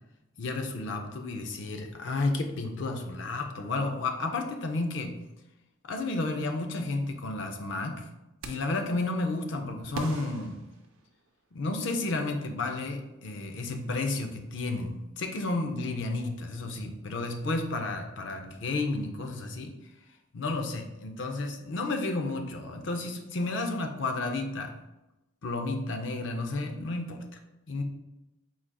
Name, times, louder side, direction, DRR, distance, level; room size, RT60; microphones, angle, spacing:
voice 1, 0.4-5.1 5.8-8.0 8.4-10.6 11.5-19.7 20.3-24.7 25.4-27.2 27.7-27.8, left 2 dB, 60° left, 4 dB, 0.5 m, -32 dB
sound 1, 8.4-8.9 9.9-11.5, right 4 dB, 80° right, 0.5 m, -41 dB
4.6 x 3.9 x 2.2 m, 0.96 s
head